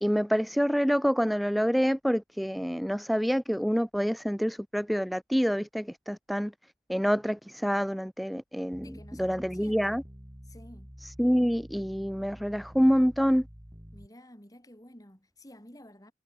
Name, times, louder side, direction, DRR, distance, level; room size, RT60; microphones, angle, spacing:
voice 1, 0.0-6.5 6.9-10.0 11.2-13.4, equal, ahead, 0.4 m, -27 dB
sound 1, 8.7-14.1, equal, 20° right, 4.3 m, -48 dB
voice 2, 8.8-10.0 10.4-11.0 13.9-16.1, left 1 dB, 20° left, 5.1 m, -52 dB
head